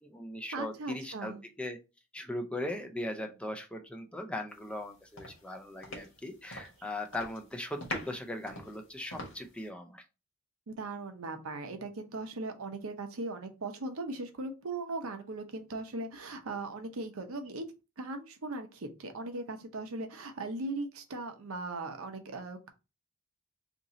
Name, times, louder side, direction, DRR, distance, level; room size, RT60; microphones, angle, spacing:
voice 1, 0.0-1.8 2.1-10.0, left 1 dB, 5° left, 5 dB, 0.4 m, -39 dB
voice 2, 0.5-1.4 10.7-17.6 18.0-22.7, right 2 dB, 90° right, 6 dB, 0.7 m, -39 dB
sound 1, 4.6-4.9 5.2-6.8 7.1-7.5 7.8-9.6, left 1 dB, 70° left, 1.2 m, -43 dB
2.9 x 2.6 x 3.7 m, 0.29 s
head